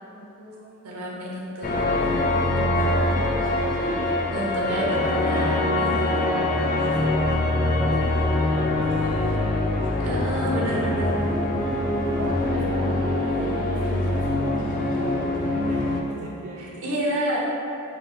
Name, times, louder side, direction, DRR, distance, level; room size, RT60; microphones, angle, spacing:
voice 1, 0.0-0.9 1.7-4.9 5.7-9.3 10.2-16.7, right 1 dB, 35° right, -6 dB, 0.4 m, -39 dB
voice 2, 0.8-1.7 4.3-6.3 10.0-11.2 16.6-17.4, equal, 75° right, -5 dB, 0.8 m, -29 dB
sound 1, 1.6-16.0, left 1 dB, 40° left, 0.3 m, -24 dB
3.8 x 2.1 x 4.1 m, 2.8 s
head